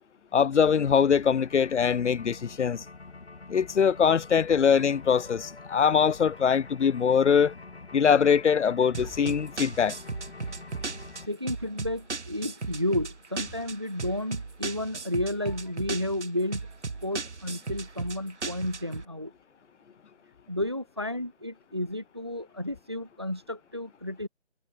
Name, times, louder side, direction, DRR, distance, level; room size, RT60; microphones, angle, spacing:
voice 1, 0.3-2.8 3.5-7.5 7.9-9.9, left 7 dB, 85° left, 0.6 m, -22 dB
sound 1, 0.5-11.3, left 3 dB, 60° left, 3.2 m, -46 dB
sound 2, 8.9-19.0, right 4 dB, 80° right, 1.4 m, -36 dB
voice 2, 11.1-16.7 17.0-19.3 20.5-24.3, left 1 dB, 25° right, 0.8 m, -32 dB
figure-of-eight pair, 175°, 34 cm